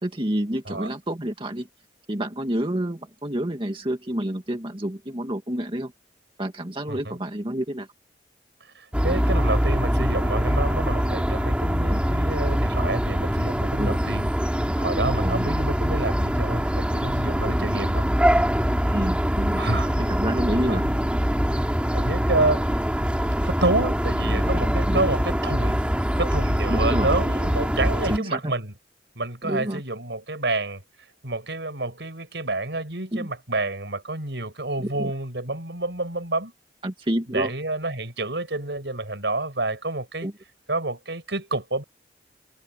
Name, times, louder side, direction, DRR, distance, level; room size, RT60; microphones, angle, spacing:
voice 1, 0.0-1.7 2.1-5.9 6.4-7.9 11.9-12.0 13.8-13.9 15.2-15.5 17.4-17.5 18.9-19.6 20.0-20.9 24.9-25.0 26.7-27.1 28.1-28.5 29.4-29.8 33.1-33.3 34.8-35.1 36.8-37.5 40.2-40.3, right 1 dB, 30° right, 1.9 m, -28 dB
voice 2, 8.7-14.3 14.8-18.1 19.6-19.9 20.7-20.9 21.9-22.7 23.4-25.8 26.1-28.7 29.2-30.8 31.2-36.5 37.3-40.3 40.7-41.8, right 2 dB, 80° right, 6.2 m, -28 dB
sound 1, 8.9-28.2, equal, 5° right, 2.9 m, -23 dB
head